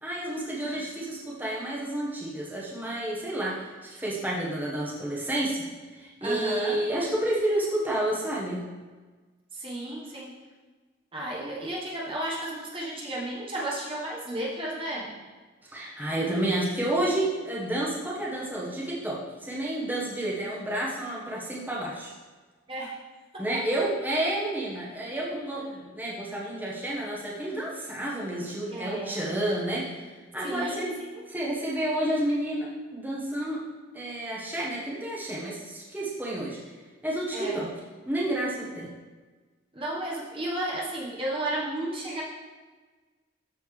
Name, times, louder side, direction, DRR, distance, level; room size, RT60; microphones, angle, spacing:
voice 1, 0.0-5.7 5.9-8.6 15.7-22.1 23.4-29.9 30.3-31.0 31.3-33.7 33.9-36.6 37.0-37.7 38.0-38.9, right 1 dB, 10° right, -6 dB, 1.3 m, -30 dB
voice 2, 6.2-6.8 9.5-10.4 11.1-15.2 22.7-23.0 23.3-23.6 28.7-29.3 30.4-31.2 37.3-37.6 39.7-42.2, right 1 dB, 30° right, -5 dB, 1.3 m, -33 dB
13.0 x 4.5 x 3.3 m, 1.3 s
head